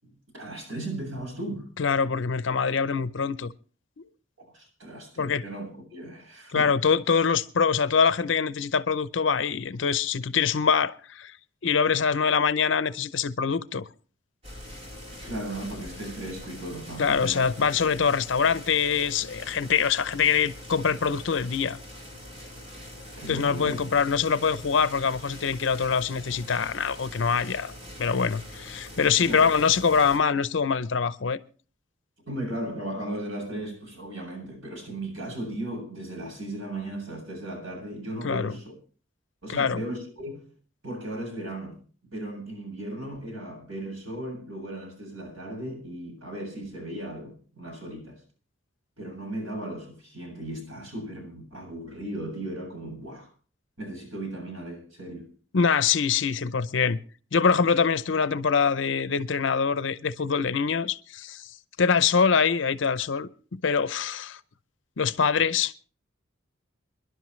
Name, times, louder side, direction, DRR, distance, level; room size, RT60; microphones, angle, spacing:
voice 1, 0.0-1.7 4.4-6.7 15.2-17.8 23.2-23.8 29.1-29.5 32.3-38.7 39.4-40.5 40.8-41.8 42.1-48.2 49.0-53.3 53.8-55.3, right 1 dB, 85° right, 7.7 m, -36 dB
voice 2, 1.8-3.5 5.2-5.4 6.5-11.3 11.6-13.8 17.0-21.8 23.3-27.7 28.0-31.4 38.2-38.5 39.5-39.8 55.5-57.0 57.3-61.5 61.8-64.4 65.0-65.7, left 6 dB, 70° left, 0.6 m, -24 dB
sound 1, 14.4-30.2, left 1 dB, 30° right, 3.9 m, -43 dB
27.5 x 11.0 x 3.2 m
head